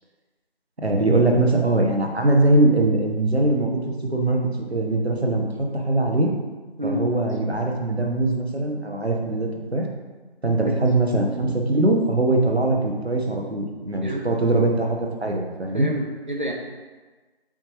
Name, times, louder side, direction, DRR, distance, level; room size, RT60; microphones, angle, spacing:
voice 1, 0.8-4.4 4.7-6.3 6.8-9.9 10.4-15.9, right 2 dB, 80° right, 1 dB, 1.2 m, -21 dB
voice 2, 15.7-16.5, equal, 50° right, 1 dB, 0.8 m, -28 dB
8.5 x 3.7 x 3.1 m, 1.3 s
figure-of-eight pair, 180°, 32 cm